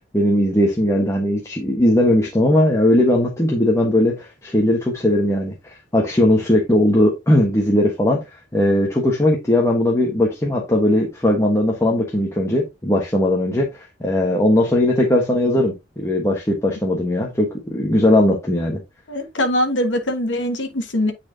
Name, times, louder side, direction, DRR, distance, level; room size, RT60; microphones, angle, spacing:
voice 1, 0.1-8.2 8.5-18.8, left 1 dB, 15° left, 1.2 m, -18 dB
voice 2, 19.1-21.1, left 1 dB, 85° left, 1.4 m, -22 dB
9.5 x 4.4 x 2.7 m
head